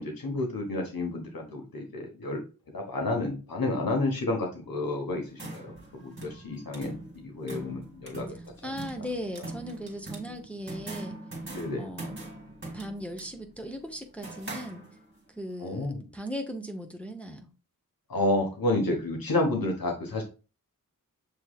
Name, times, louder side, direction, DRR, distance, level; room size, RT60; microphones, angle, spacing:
voice 1, 0.0-2.4 2.7-8.3 8.6-8.7 11.5-11.9 15.6-16.0 18.1-20.2, left 2 dB, 85° left, 1.1 m, -30 dB
sound 1, 5.1-15.3, right 2 dB, 35° right, 1.7 m, -42 dB
voice 2, 8.3-11.2 11.8-12.1 12.7-14.8 15.4-17.5, equal, 5° left, 0.8 m, -38 dB
6.9 x 3.1 x 2.3 m
wide cardioid pair, 90°, 34 cm